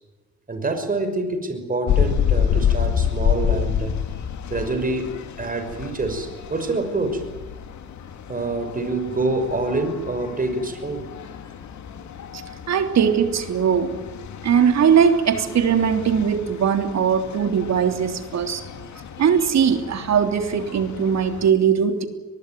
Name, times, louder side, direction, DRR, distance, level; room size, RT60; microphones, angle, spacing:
voice 1, 0.5-3.9 4.5-5.1 5.4-7.2 8.3-11.0, right 2 dB, 30° right, 7 dB, 6.1 m, -26 dB
sound 1, 1.9-21.5, left 8 dB, 70° left, 2.7 m, -29 dB
voice 2, 12.7-13.9 14.4-18.6 19.2-22.1, right 7 dB, 60° right, 7 dB, 3.3 m, -20 dB
23.5 x 21.0 x 9.4 m, 1.2 s
cardioid pair, 90°, 30 cm